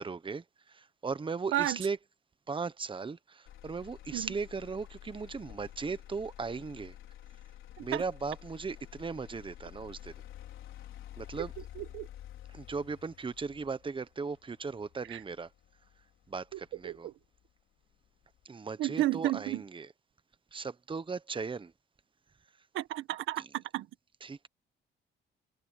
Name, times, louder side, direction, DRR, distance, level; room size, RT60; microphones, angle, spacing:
voice 1, 0.0-2.0 2.5-6.9 7.8-10.1 11.2-11.5 12.5-15.5 16.3-17.1 18.4-19.9 20.5-21.7 23.4-23.5 24.2-24.5, right 4 dB, 25° right, 1.1 m, -37 dB
Motor vehicle (road), 3.5-17.5 17.9-18.4, left 12 dB, 85° left, 4.6 m, -50 dB
voice 2, 11.8-12.1 15.1-15.2 16.5-17.1 18.8-19.6 22.7-23.9, right 15 dB, 85° right, 1.4 m, -32 dB
cardioid pair, 90°, 20 cm